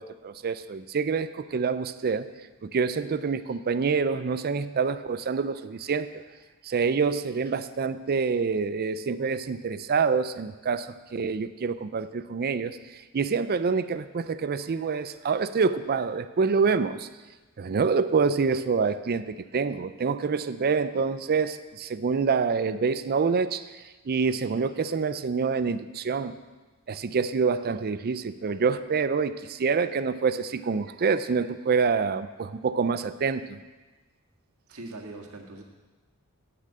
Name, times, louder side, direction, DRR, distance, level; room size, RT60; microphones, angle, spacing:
voice 1, 0.0-2.3 2.6-6.2 6.6-17.1 17.6-23.7 24.1-26.3 26.9-33.6, right 5 dB, 45° right, 13 dB, 0.4 m, -26 dB
voice 2, 34.7-35.6, right 2 dB, 70° right, 1 dB, 1.7 m, -41 dB
8.8 x 8.3 x 7.5 m, 1.2 s
head